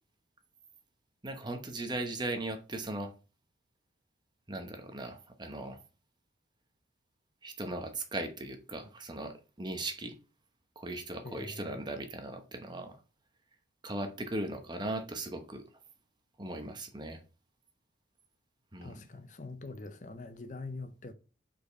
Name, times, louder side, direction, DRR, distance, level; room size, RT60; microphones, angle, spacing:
voice 1, 1.2-3.1 4.5-5.8 7.4-10.2 10.8-13.0 13.8-15.6 16.4-17.2 18.7-19.1, right 2 dB, 25° right, 0.9 m, -38 dB
voice 2, 11.2-11.8 18.8-21.1, left 3 dB, 40° left, 0.6 m, -44 dB
5.2 x 4.5 x 5.2 m
head